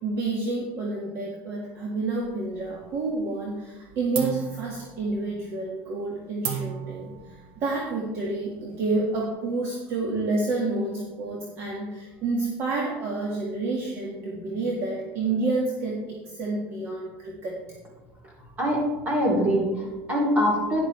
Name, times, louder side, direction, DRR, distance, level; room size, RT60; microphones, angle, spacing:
voice 1, 0.0-7.1 7.6-17.6, right 3 dB, 40° right, -2 dB, 1.8 m, -29 dB
sound 1, 2.2-3.1 3.4-3.8 4.1-9.3, right 7 dB, 75° right, 1.8 m, -37 dB
voice 2, 19.0-20.8, equal, 25° right, -3 dB, 3.3 m, -23 dB
12.0 x 10.5 x 3.3 m, 1.2 s
cardioid pair, 155°, 7 cm